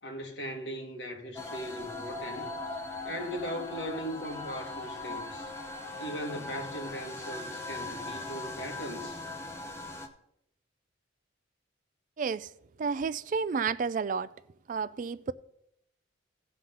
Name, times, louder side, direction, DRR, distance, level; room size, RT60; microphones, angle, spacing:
voice 1, 0.0-2.5 3.0-5.5 6.0-9.2, equal, 65° left, 1.9 m, -38 dB
sound 1, 1.4-10.1, left 2 dB, 15° left, 0.9 m, -40 dB
voice 2, 12.2-12.5 12.8-14.3 14.7-15.3, right 5 dB, 45° right, 0.3 m, -31 dB
17.0 x 5.8 x 3.9 m
head